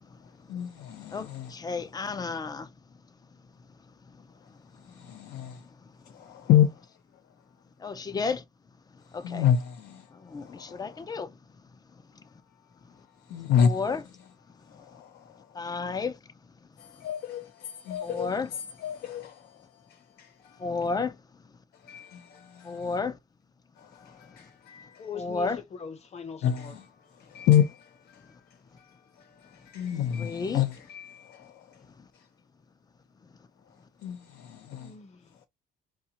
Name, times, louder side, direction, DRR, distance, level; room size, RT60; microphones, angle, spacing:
voice 1, 0.2-1.6 4.7-5.7 6.0-6.7 9.0-11.1 13.0-13.9 14.2-15.7 16.8-20.8 21.7-23.0 23.8-25.1 26.4-31.9 32.1-32.3 33.6-35.0 35.3-35.5, left 9 dB, 75° left, 0.7 m, -30 dB
voice 2, 1.1-2.7 7.8-8.4 9.1-9.4 10.2-11.3 13.6-14.0 15.5-16.2 18.0-18.5 20.6-21.2 22.6-23.2 25.1-25.6 30.2-30.6, left 4 dB, 25° left, 0.5 m, -32 dB
voice 3, 25.0-26.7 27.2-27.3 34.7-35.3, left 7 dB, 40° left, 0.9 m, -41 dB
4.8 x 2.2 x 2.8 m
cardioid pair, 110°, 17 cm